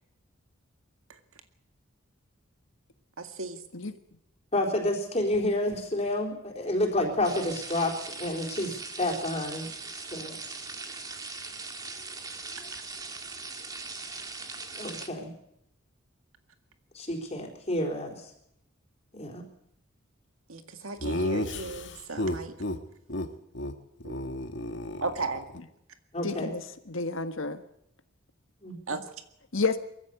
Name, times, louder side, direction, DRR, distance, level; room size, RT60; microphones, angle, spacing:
voice 1, 3.2-3.6 20.5-22.5 24.0-24.1 25.0-25.4 28.9-29.0, right 3 dB, 85° right, 7 dB, 2.0 m, -35 dB
voice 2, 4.5-9.7 10.1-10.4 14.8-15.3 16.9-18.2 19.1-19.4 26.1-26.5 28.6-28.8, left 1 dB, 30° left, 0 dB, 4.0 m, -29 dB
sound 1, 7.2-15.1, right 3 dB, 20° right, 1.7 m, -40 dB
Laughter, 21.0-22.8 23.1-23.3 23.5-23.7 24.0-25.6, left 1 dB, 55° left, 1.8 m, -32 dB
voice 3, 26.2-27.6 29.5-29.8, left 4 dB, 75° left, 8 dB, 1.6 m, -30 dB
23.0 x 15.0 x 8.3 m, 0.77 s
head